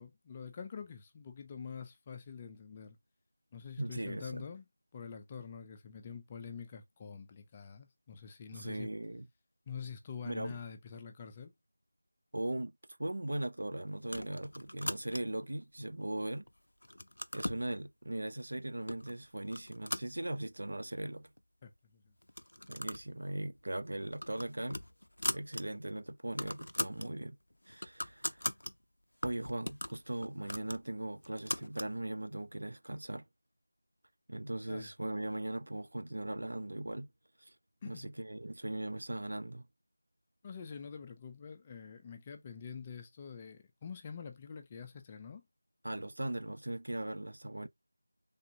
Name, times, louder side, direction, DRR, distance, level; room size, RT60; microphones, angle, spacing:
voice 1, 0.0-3.0 3.5-4.7 4.9-8.9 9.7-11.5 21.6-22.1 34.7-34.9 37.8-38.0 40.4-45.4, left 6 dB, 15° left, 0.3 m, -46 dB
voice 2, 3.8-4.4 8.5-9.3 10.2-10.6 12.3-12.7 13.0-16.4 17.3-21.3 22.7-24.8 25.3-27.4 27.7-28.4 29.2-33.2 34.3-37.1 37.4-37.5 37.8-39.7 45.8-47.7, right 1 dB, 65° right, 0.4 m, -39 dB
sound 1, 14.0-15.5 16.0-16.5 16.8-17.7 18.4-18.5 18.9-19.1 19.5-20.7 21.1-21.2 21.4-21.5 22.2-23.1 23.4-23.6 24.0-25.6 26.0-26.1 26.3-27.1 27.5-28.7 29.2-31.9, left 1 dB, 85° left, 0.4 m, -40 dB
3.4 x 2.7 x 2.6 m
figure-of-eight pair, 175°, 0 cm